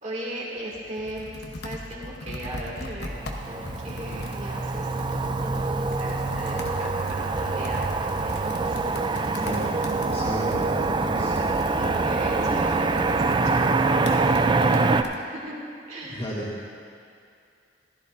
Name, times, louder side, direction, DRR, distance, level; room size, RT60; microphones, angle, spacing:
voice 1, 0.0-3.2 3.5-9.4 11.7-15.6 15.9-16.3, right 1 dB, 40° right, -4 dB, 2.3 m, -37 dB
Computer keyboard, 0.6-15.2, left 1 dB, 65° left, 1.0 m, -39 dB
Motor vehicle (road), 3.1-15.0, right 3 dB, 25° right, 0.4 m, -25 dB
voice 2, 9.4-9.7 10.1-11.4 16.1-16.5, equal, 35° left, -9 dB, 2.1 m, -33 dB
15.0 x 13.0 x 2.6 m, 2.4 s
head